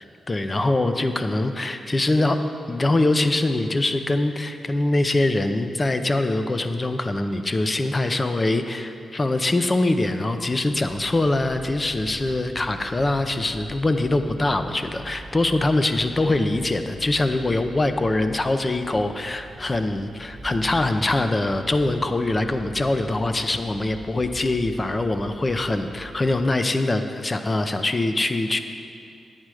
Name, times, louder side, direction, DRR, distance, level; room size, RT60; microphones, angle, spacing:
voice 1, 0.0-2.4 2.7-28.6, left 2 dB, 25° left, 8 dB, 0.6 m, -23 dB
sound 1, 10.7-26.5, right 1 dB, 15° right, 0.5 m, -43 dB
10.5 x 9.1 x 4.9 m, 2.4 s
cardioid pair, 85°, 0 cm